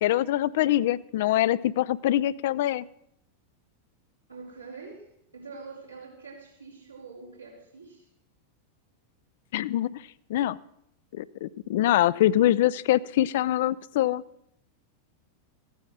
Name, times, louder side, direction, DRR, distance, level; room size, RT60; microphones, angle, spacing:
voice 1, 0.0-2.9 9.5-10.0 10.3-10.6 11.1-14.2, left 13 dB, 55° left, 18 dB, 0.4 m, -24 dB
voice 2, 4.3-8.1, right 4 dB, 85° right, -4 dB, 4.8 m, -45 dB
15.5 x 9.3 x 6.4 m, 0.74 s
figure-of-eight pair, 90°, 0 cm